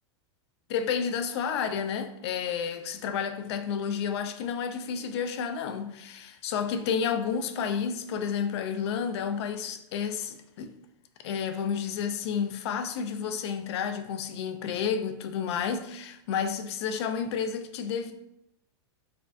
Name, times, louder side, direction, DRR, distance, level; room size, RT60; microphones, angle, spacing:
voice 1, 0.7-10.7 11.2-18.1, left 7 dB, 65° left, 0.4 m, -31 dB
4.1 x 2.3 x 2.6 m
supercardioid pair, 140°, 15 cm